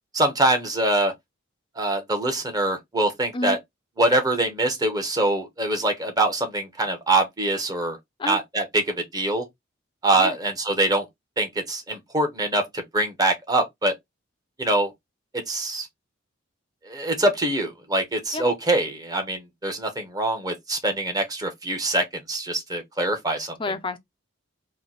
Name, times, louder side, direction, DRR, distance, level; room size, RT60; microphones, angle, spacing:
voice 1, 0.1-1.1 1.8-3.6 4.0-8.0 8.3-9.4 10.0-11.1 11.4-13.9 14.6-14.9 15.5-15.9 16.9-23.5, right 2 dB, 20° right, 0.8 m, -24 dB
voice 2, 23.6-24.0, left 2 dB, 25° left, 0.4 m, -29 dB
3.0 x 2.1 x 4.0 m
head